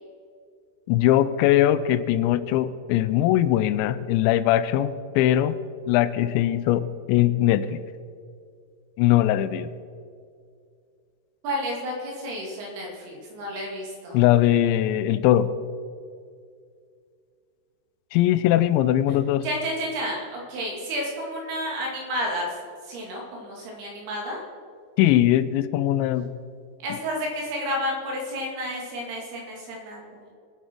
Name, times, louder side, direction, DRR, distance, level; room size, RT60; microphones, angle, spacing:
voice 1, 0.9-5.6 5.9-7.8 9.0-9.7 14.1-15.5 18.1-19.5 25.0-26.3, left 13 dB, 90° left, 14 dB, 2.9 m, -21 dB
voice 2, 11.4-14.2 19.4-22.6 22.8-24.4 26.8-30.3, equal, 65° right, -1 dB, 4.2 m, -31 dB
21.5 x 8.0 x 4.6 m, 2.2 s
omnidirectional pair, 5.1 m